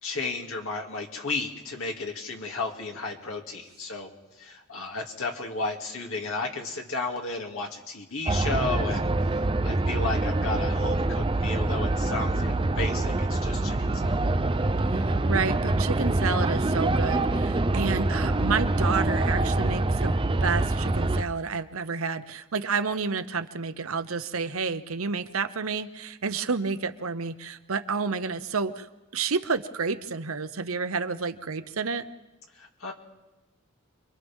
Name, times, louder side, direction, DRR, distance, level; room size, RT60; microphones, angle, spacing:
voice 1, 0.0-14.3 32.5-32.9, left 3 dB, 75° left, 1 dB, 2.6 m, -33 dB
sound 1, 8.3-21.2, right 2 dB, 25° right, 0.6 m, -25 dB
voice 2, 14.9-28.9 29.1-32.0, right 5 dB, 80° right, 10 dB, 0.9 m, -30 dB
30.0 x 23.5 x 3.7 m, 1.1 s
head